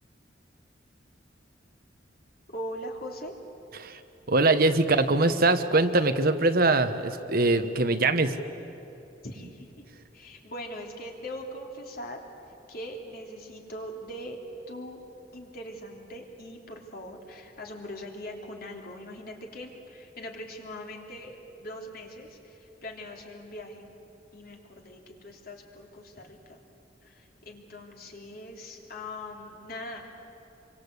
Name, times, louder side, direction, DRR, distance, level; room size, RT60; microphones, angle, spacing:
voice 1, 2.5-3.4 9.2-9.9 10.1-12.3 12.7-14.4 14.7-15.0 15.3-23.9 24.3-26.6 27.0-30.3, equal, 55° left, 1 dB, 3.5 m, -41 dB
voice 2, 4.3-8.4, right 2 dB, 55° right, 9 dB, 1.2 m, -22 dB
27.0 x 24.0 x 8.3 m, 3.0 s
head